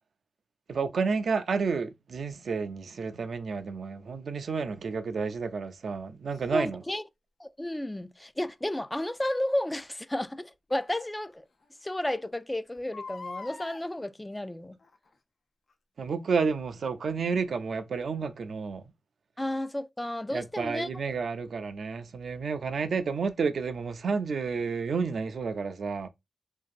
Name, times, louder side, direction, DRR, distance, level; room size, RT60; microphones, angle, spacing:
voice 1, 0.7-6.8 16.0-18.8 20.3-26.1, right 5 dB, 75° right, 0.4 m, -30 dB
Crying sobbing, 6.3-6.5 8.9-9.1 10.7-10.8 11.3-11.4 11.6-11.7 12.8-13.8 14.8-15.1 15.7-15.8, left 3 dB, 65° left, 0.5 m, -42 dB
voice 2, 6.5-7.0 7.4-11.4 11.8-14.8 19.4-20.9, left 1 dB, 15° left, 0.3 m, -32 dB
2.9 x 2.6 x 2.3 m
cardioid pair, 45°, 0 cm